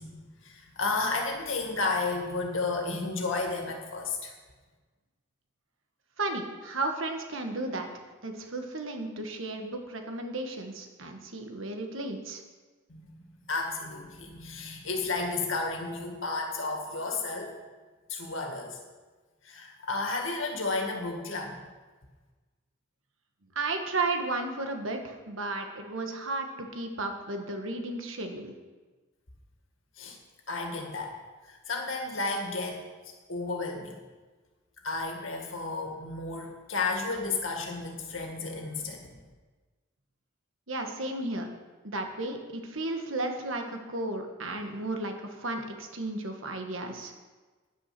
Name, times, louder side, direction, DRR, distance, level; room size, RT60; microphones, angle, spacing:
voice 1, 0.0-4.3 12.9-17.6 18.1-18.8 19.4-21.6 30.0-30.2 30.5-31.2 31.5-32.9 33.3-34.0 34.8-39.2, left 3 dB, 70° left, 2 dB, 2.0 m, -32 dB
voice 2, 6.2-7.9 8.2-12.4 23.5-28.5 40.7-41.5 41.8-47.1, right 2 dB, 75° right, 4 dB, 1.5 m, -34 dB
10.0 x 9.6 x 6.0 m, 1.3 s
head